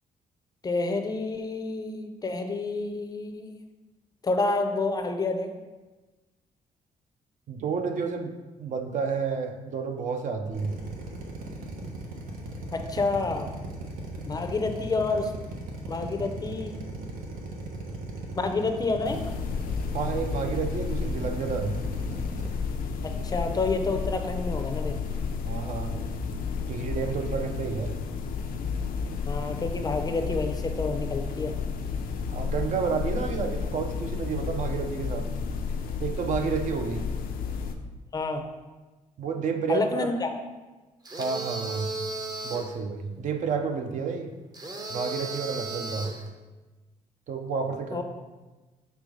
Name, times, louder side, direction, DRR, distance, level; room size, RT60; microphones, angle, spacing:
voice 1, 0.6-3.5 4.2-5.5 12.7-13.5 14.2-15.3 15.8-16.8 18.4-19.2 23.0-25.0 27.3-27.5 29.3-31.6 38.1-38.5 39.7-40.3 47.9-48.0, left 3 dB, 25° left, 6 dB, 0.5 m, -29 dB
voice 2, 7.5-8.3 8.6-10.8 19.9-21.8 25.5-25.9 26.7-28.0 32.3-35.3 36.0-37.1 39.2-40.1 41.2-41.9 42.4-44.3 44.9-46.1 47.3-48.0, right 5 dB, 60° right, 5 dB, 0.7 m, -30 dB
Drill, 10.5-22.5, right 2 dB, 85° right, 1.0 m, -38 dB
sound 1, 19.0-37.8, left 5 dB, 85° left, 0.5 m, -32 dB
sound 2, 41.0-42.7 44.5-46.3, right 3 dB, 25° right, 0.7 m, -35 dB
6.5 x 3.4 x 5.0 m, 1.2 s
cardioid pair, 145°, 14 cm